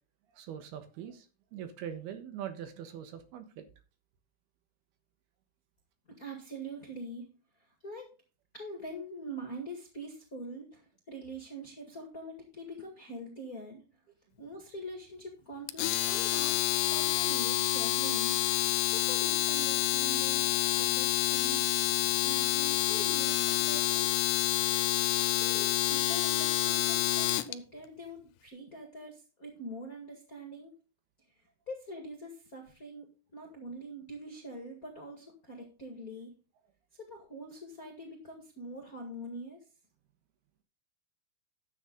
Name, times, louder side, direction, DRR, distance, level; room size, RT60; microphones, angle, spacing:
voice 1, 0.3-1.3 1.5-3.6, right 9 dB, 75° right, 3.1 m, -42 dB
voice 2, 6.1-7.3 7.6-8.1 8.5-13.8 14.4-16.6 16.9-18.6 18.9-21.7 22.2-24.1 25.4-30.7 31.7-33.1 33.3-36.4 37.0-39.6, right 1 dB, 35° left, 1.4 m, -44 dB
Domestic sounds home sounds, 15.7-27.5, left 15 dB, 85° left, 2.8 m, -28 dB
11.5 x 7.6 x 3.9 m
omnidirectional pair, 4.7 m